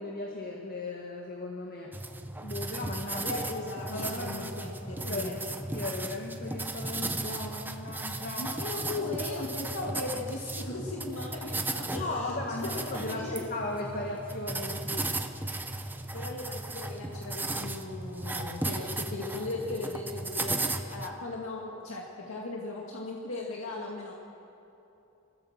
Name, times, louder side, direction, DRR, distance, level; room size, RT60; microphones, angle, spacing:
voice 1, 0.0-1.9 2.4-3.4 3.9-4.6 5.0-5.4 5.7-8.5 11.9-15.1, left 2 dB, 45° left, 0 dB, 1.7 m, -36 dB
sound 1, 1.9-21.1, right 2 dB, 10° right, 0.8 m, -36 dB
voice 2, 3.2-5.3 8.4-12.4 12.6-13.4 16.1-20.6 20.9-24.1, left 2 dB, 75° left, -2 dB, 1.9 m, -37 dB
24.0 x 15.5 x 7.3 m, 2.9 s
head